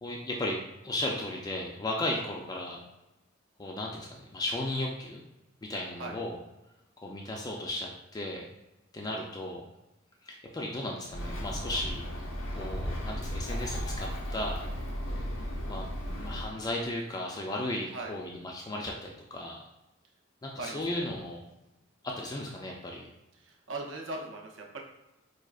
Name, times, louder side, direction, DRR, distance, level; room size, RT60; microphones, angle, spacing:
voice 1, 0.0-2.8 3.6-5.2 5.7-6.4 7.0-8.5 8.9-9.7 10.2-12.0 12.5-14.6 15.7-19.6 20.4-21.4 22.0-23.1, left 1 dB, 20° left, -1 dB, 0.3 m, -35 dB
Bird, 11.1-16.5, equal, 75° left, 0.6 m, -35 dB
voice 2, 20.6-21.0 23.4-24.8, right 2 dB, 70° right, 0 dB, 0.7 m, -39 dB
4.7 x 2.4 x 2.3 m, 0.96 s
head